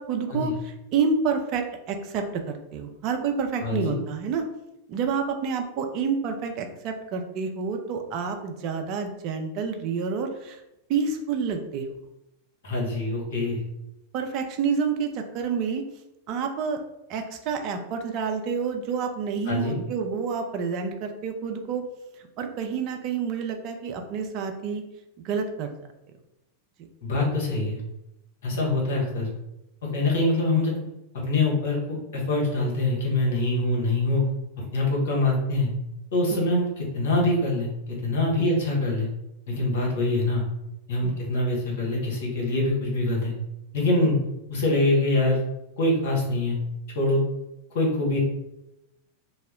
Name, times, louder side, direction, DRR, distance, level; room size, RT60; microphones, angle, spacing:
voice 1, 0.0-4.4 4.9-10.6 10.9-11.9 14.1-15.8 16.3-16.8 17.1-21.8 22.4-24.8 25.2-25.7 28.5-28.6 36.3-36.5 38.4-38.5 41.0-41.2 44.0-44.2, right 5 dB, 40° right, 4 dB, 0.4 m, -28 dB
voice 2, 3.6-4.0 12.6-13.6 19.5-19.8 27.0-27.8 28.4-29.3 29.8-30.8 31.2-34.2 34.7-35.7 36.1-39.1 39.5-40.4 40.9-43.3 43.7-44.2 44.5-45.4 45.8-46.6 46.9-47.2 47.7-48.2, left 2 dB, 55° left, -3 dB, 1.1 m, -24 dB
2.7 x 2.1 x 3.5 m, 0.90 s
figure-of-eight pair, 90°, 0 cm